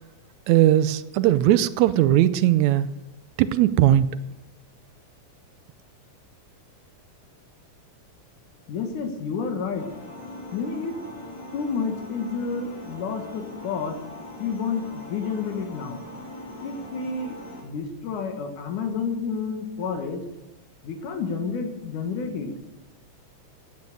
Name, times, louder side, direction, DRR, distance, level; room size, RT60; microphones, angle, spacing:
voice 1, 0.5-2.9 3.4-4.1, right 13 dB, 80° right, 13 dB, 1.8 m, -19 dB
voice 2, 8.7-9.9 10.5-11.0 11.5-14.0 14.4-16.0 16.6-20.2 20.8-22.5, left 5 dB, 85° left, 4 dB, 3.1 m, -30 dB
sound 1, 9.7-17.6, left 1 dB, 65° left, 5.4 m, -41 dB
16.0 x 8.6 x 6.7 m, 0.95 s
omnidirectional pair, 3.4 m